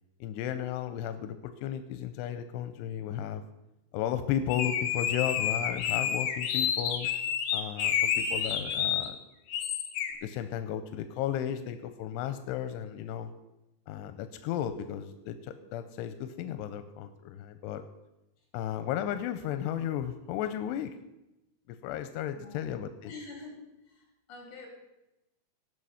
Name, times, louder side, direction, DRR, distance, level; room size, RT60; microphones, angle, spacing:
voice 1, 0.2-3.4 3.9-7.1 7.5-9.2 10.2-13.3 13.9-17.8 18.5-20.9 21.8-23.1, left 10 dB, 90° left, 10 dB, 2.8 m, -34 dB
sound 1, 4.5-9.1 9.5-10.1, left 8 dB, 70° left, 2.3 m, -29 dB
voice 2, 22.3-22.6 23.0-23.6 24.3-24.7, left 3 dB, 50° left, 0 dB, 4.3 m, -45 dB
18.0 x 6.1 x 5.6 m, 0.94 s
omnidirectional pair, 4.8 m